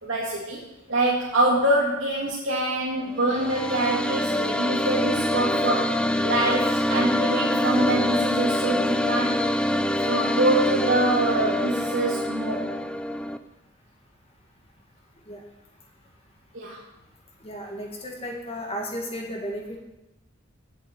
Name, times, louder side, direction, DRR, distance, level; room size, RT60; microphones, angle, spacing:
voice 1, 0.0-0.6 0.9-9.5 10.0-12.6 16.5-16.8, right 1 dB, 65° right, -5 dB, 2.2 m, -25 dB
sound 1, 3.1-13.4, left 1 dB, 5° left, 0.4 m, -25 dB
voice 2, 17.4-19.8, equal, 30° left, 0 dB, 1.9 m, -34 dB
8.4 x 7.6 x 8.9 m, 0.96 s
head